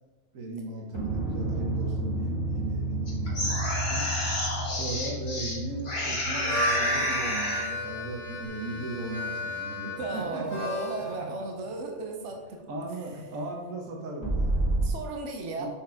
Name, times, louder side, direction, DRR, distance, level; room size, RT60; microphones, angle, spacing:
voice 1, 0.3-3.6 3.9-4.1 4.6-10.6 11.1-11.3 12.7-14.7 15.6-15.7, right 2 dB, 90° right, 1 dB, 1.5 m, -37 dB
sound 1, 0.9-9.3 14.2-14.9, right 1 dB, 20° right, 1.6 m, -32 dB
sound 2, 3.1-5.5 5.8-7.7, left 1 dB, 50° left, 1.8 m, -30 dB
Harmonica, 6.2-11.1, equal, 35° right, 2.5 m, -34 dB
voice 2, 9.8-12.6 14.8-15.7, right 3 dB, 65° right, 2 dB, 1.2 m, -34 dB
5.7 x 5.2 x 5.0 m, 1.3 s
omnidirectional pair, 1.3 m